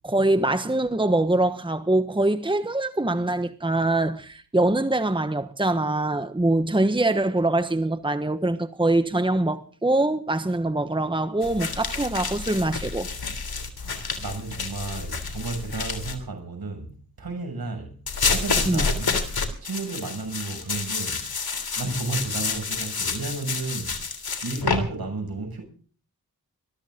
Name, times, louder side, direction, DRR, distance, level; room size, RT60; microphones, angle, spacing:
voice 1, 0.0-13.1 18.7-18.9, right 2 dB, 15° right, 1.3 m, -23 dB
sound 1, 11.4-16.2 18.1-24.8, left 4 dB, 85° left, 3.3 m, -29 dB
voice 2, 13.8-18.0 18.2-19.2 19.6-21.2 21.8-23.9 24.4-25.6, right 3 dB, 80° right, 6.8 m, -33 dB
22.0 x 14.0 x 3.8 m
cardioid pair, 50°, 36 cm